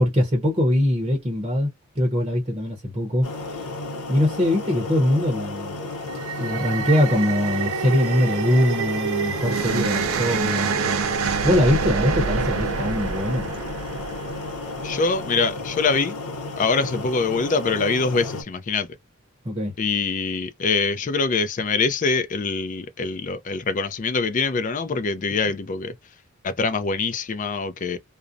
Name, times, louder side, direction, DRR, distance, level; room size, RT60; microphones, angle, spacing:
voice 1, 0.0-1.7 2.0-3.3 4.1-5.8 6.4-10.7 11.4-13.5 19.4-19.7, left 1 dB, 25° right, 0.7 m, -22 dB
sound 1, 3.2-18.4, left 2 dB, 85° left, 0.7 m, -33 dB
sound 2, 5.9-15.2, right 6 dB, 70° right, 0.5 m, -27 dB
voice 2, 14.8-16.1 16.6-18.9 19.8-25.9 26.4-28.0, left 4 dB, 35° left, 0.4 m, -24 dB
2.4 x 2.0 x 2.5 m
head